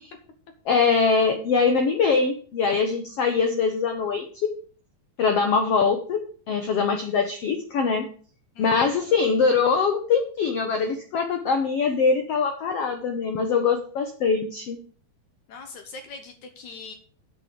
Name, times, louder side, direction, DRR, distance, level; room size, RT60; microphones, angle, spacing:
voice 1, 0.6-4.5 5.2-6.2 6.5-8.1 8.6-14.8, left 5 dB, 90° left, 6 dB, 1.3 m, -23 dB
voice 2, 8.6-9.0 15.5-16.9, left 4 dB, 65° left, 6 dB, 2.1 m, -42 dB
8.4 x 6.1 x 8.2 m, 0.43 s
omnidirectional pair, 4.4 m